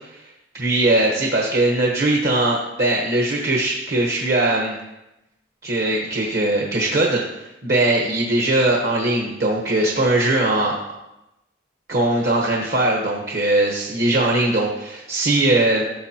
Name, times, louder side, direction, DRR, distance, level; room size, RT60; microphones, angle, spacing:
voice 1, 0.5-4.8 5.6-7.2 7.6-10.8 11.9-15.9, right 2 dB, 50° right, -1 dB, 1.1 m, -20 dB
15.0 x 6.7 x 2.9 m, 0.93 s
head